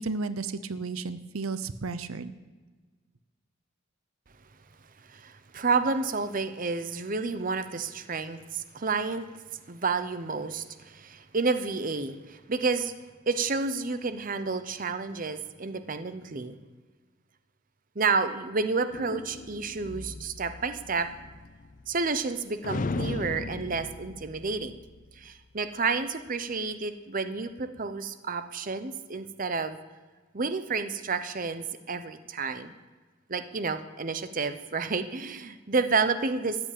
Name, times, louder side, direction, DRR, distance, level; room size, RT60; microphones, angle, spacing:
voice 1, 0.0-2.3, right 4 dB, 90° right, 13 dB, 0.7 m, -33 dB
voice 2, 5.1-9.4 9.7-12.9 13.3-16.5 18.0-21.1 21.9-24.8 25.2-29.8 30.3-32.7 33.3-36.6, right 4 dB, 40° right, 10 dB, 0.7 m, -30 dB
sound 1, 18.9-22.3 22.6-25.3, left 3 dB, 40° left, 0.4 m, -37 dB
13.5 x 8.0 x 8.6 m, 1.4 s
head